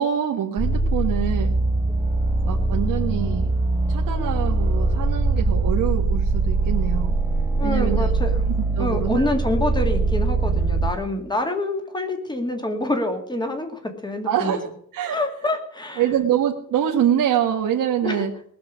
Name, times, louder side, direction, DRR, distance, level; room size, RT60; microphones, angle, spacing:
voice 1, 0.0-1.6 2.4-3.5 3.9-7.2 7.6-8.1 8.8-9.3 14.2-14.7 14.9-15.2 16.0-18.3, right 9 dB, 90° right, 0 dB, 1.6 m, -24 dB
sound 1, 0.6-10.9, right 3 dB, 10° right, 2.4 m, -22 dB
voice 2, 7.6-8.4 8.8-14.6 15.1-16.0 18.0-18.3, left 1 dB, 15° left, 5 dB, 2.1 m, -26 dB
19.5 x 6.9 x 8.2 m, 0.64 s
wide cardioid pair, 170°, 32 cm